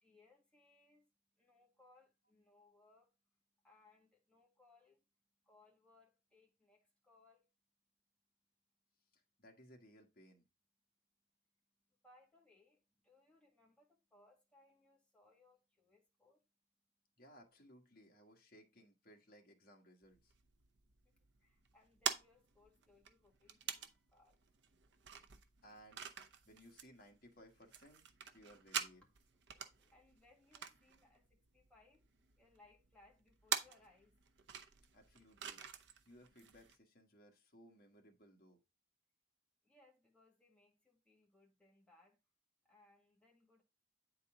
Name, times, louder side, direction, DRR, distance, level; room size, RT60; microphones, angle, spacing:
voice 1, 0.0-3.1 3.6-5.0 5.4-7.5 12.0-16.4 21.0-24.4 29.7-32.0 32.4-34.1 39.6-42.2 42.6-43.6, left 2 dB, 5° left, 1.8 m, -69 dB
voice 2, 9.1-10.5 17.2-20.3 25.3-26.1 26.4-28.0 28.3-29.0 34.9-35.7 36.0-38.6, equal, 50° left, 1.6 m, -62 dB
sound 1, 20.0-36.8, right 8 dB, 70° right, 0.7 m, -47 dB
8.9 x 4.1 x 3.7 m
head